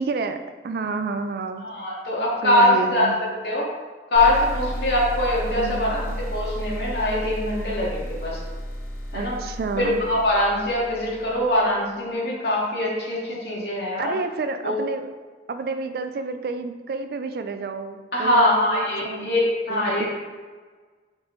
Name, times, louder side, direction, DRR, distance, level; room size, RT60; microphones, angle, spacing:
voice 1, 0.0-1.6 2.4-3.2 5.5-6.2 9.1-10.0 14.0-15.1 15.5-19.3 19.7-20.1, right 4 dB, 55° right, 8 dB, 0.3 m, -30 dB
voice 2, 1.6-3.1 3.4-3.7 4.1-6.0 6.3-8.4 9.1-9.4 9.8-14.1 14.6-14.8 18.1-20.1, left 1 dB, 60° left, -4 dB, 0.8 m, -22 dB
sound 1, 4.1-11.7, equal, 10° left, 0.6 m, -33 dB
3.7 x 3.6 x 3.1 m, 1.4 s
head